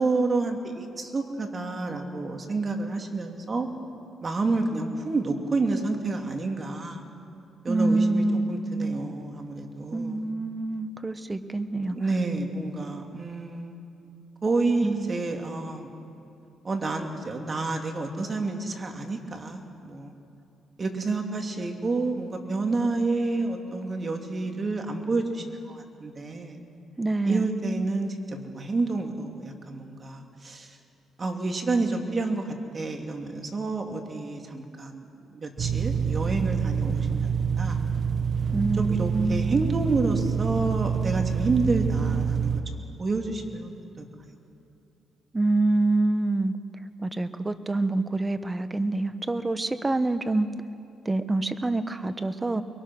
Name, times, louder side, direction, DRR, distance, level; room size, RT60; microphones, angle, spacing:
voice 1, 0.0-3.7 4.2-7.0 7.6-10.3 11.9-13.8 14.4-16.0 16.6-20.1 20.8-26.6 27.3-30.8 31.2-35.1 35.3-37.3 37.6-37.8 38.8-42.6 43.0-44.1, right 3 dB, 35° right, 3 dB, 2.7 m, -29 dB
voice 2, 7.7-9.0 9.9-11.9 14.8-15.2 27.0-27.5 38.5-39.6 45.3-46.5 47.0-50.5 51.0-52.6, right 2 dB, 20° right, 11 dB, 1.1 m, -26 dB
sound 1, 35.6-42.6, right 6 dB, 55° right, 1.3 m, -26 dB
24.5 x 22.5 x 6.2 m, 2.8 s
cardioid pair, 90°, 0 cm